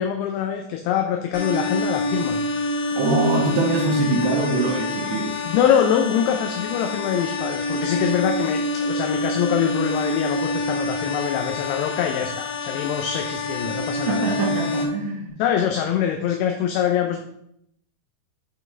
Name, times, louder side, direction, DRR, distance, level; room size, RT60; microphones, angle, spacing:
voice 1, 0.0-2.4 5.5-14.3 15.4-17.2, left 9 dB, 80° left, 4 dB, 2.5 m, -24 dB
sound 1, 1.3-14.8, left 1 dB, 55° left, 3.3 m, -27 dB
voice 2, 2.9-5.4 14.1-15.3, right 2 dB, 80° right, 0 dB, 3.0 m, -23 dB
8.2 x 4.7 x 3.3 m, 0.76 s
omnidirectional pair, 5.0 m